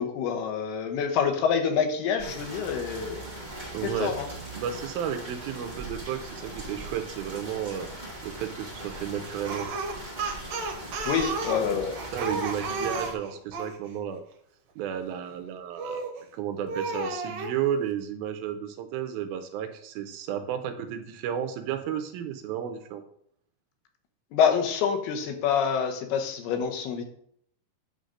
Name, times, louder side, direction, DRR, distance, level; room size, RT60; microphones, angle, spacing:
voice 1, 0.0-3.2 3.8-4.3 11.1-11.9 24.3-27.0, left 7 dB, 85° left, 5 dB, 3.0 m, -26 dB
sound 1, 2.2-13.1, right 1 dB, 40° right, 0.6 m, -40 dB
voice 2, 3.7-4.1 4.6-7.9 8.2-9.7 12.1-14.2 14.8-23.0, right 9 dB, 80° right, 7 dB, 2.4 m, -33 dB
Speech, 9.4-13.8 15.8-16.2 16.7-17.5, right 3 dB, 65° right, 2.4 m, -32 dB
9.1 x 3.9 x 6.4 m, 0.68 s
omnidirectional pair, 4.5 m